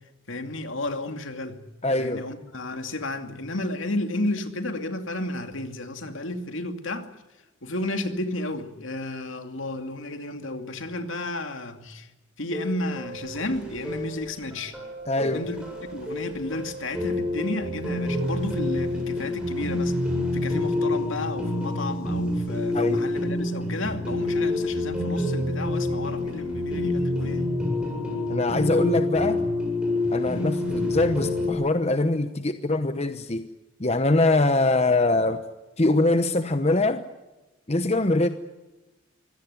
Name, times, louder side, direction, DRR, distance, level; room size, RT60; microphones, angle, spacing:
voice 1, 0.3-1.6 2.0-7.1 7.6-12.1 12.4-14.8 15.2-15.6 15.9-19.9 20.3-27.5, left 1 dB, 70° left, 2.5 m, -32 dB
voice 2, 1.8-2.2 15.1-15.4 22.7-23.0 28.3-29.4 30.1-33.4 33.8-35.5 35.8-37.0 37.7-38.3, left 2 dB, 30° left, 0.9 m, -23 dB
sound 1, 12.5-31.5, left 2 dB, 5° right, 7.8 m, -28 dB
24.5 x 17.0 x 9.5 m
head